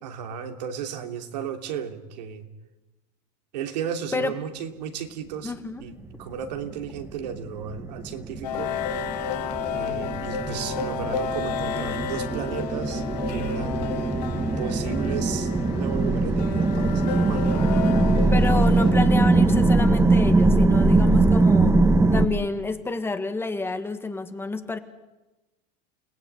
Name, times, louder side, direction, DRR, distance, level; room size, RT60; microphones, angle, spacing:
voice 1, 0.0-2.5 3.5-5.5 5.8-8.8 9.7-14.0 14.6-17.5, right 8 dB, 90° right, 5 dB, 3.1 m, -34 dB
voice 2, 5.4-5.9 18.3-21.8 22.1-24.8, left 3 dB, 10° left, 8 dB, 1.8 m, -29 dB
sound 1, 6.8-22.3, right 2 dB, 15° right, 1.7 m, -22 dB
sound 2, 8.4-18.9, left 7 dB, 90° left, 2.1 m, -32 dB
29.5 x 17.5 x 9.7 m, 1.1 s
supercardioid pair, 135°, 21 cm